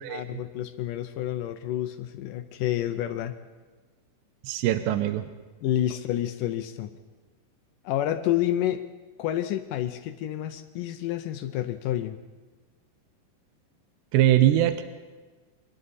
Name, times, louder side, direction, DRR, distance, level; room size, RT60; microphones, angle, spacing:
voice 1, 0.1-3.4 5.6-6.9 7.8-8.8 9.2-12.2, left 12 dB, 85° left, 8 dB, 1.9 m, -29 dB
voice 2, 4.4-5.3 14.1-14.8, right 12 dB, 85° right, 9 dB, 3.0 m, -22 dB
28.0 x 24.0 x 4.2 m, 1.3 s
omnidirectional pair, 4.9 m